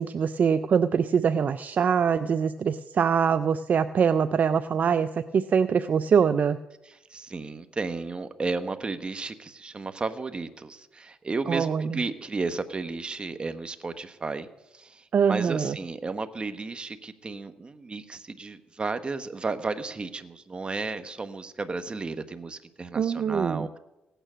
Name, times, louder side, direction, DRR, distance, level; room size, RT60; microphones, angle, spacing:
voice 1, 0.0-6.6 11.5-12.0 15.1-15.8 23.0-23.7, right 7 dB, 50° right, 12 dB, 0.5 m, -23 dB
voice 2, 6.8-14.5 14.7-23.8, right 3 dB, 30° right, 10 dB, 1.1 m, -33 dB
16.5 x 9.1 x 6.2 m, 0.95 s
cardioid pair, 85°, 4 cm